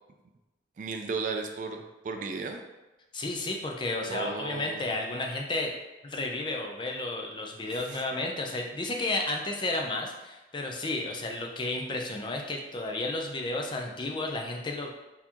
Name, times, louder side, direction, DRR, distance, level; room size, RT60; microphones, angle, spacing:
voice 1, 0.8-1.8 2.0-2.6 4.1-4.9 7.9-8.0, right 4 dB, 45° right, 5 dB, 0.3 m, -34 dB
voice 2, 3.1-5.8 6.0-14.9, left 2 dB, 25° left, 1 dB, 0.4 m, -32 dB
4.2 x 2.8 x 2.8 m, 1.1 s
head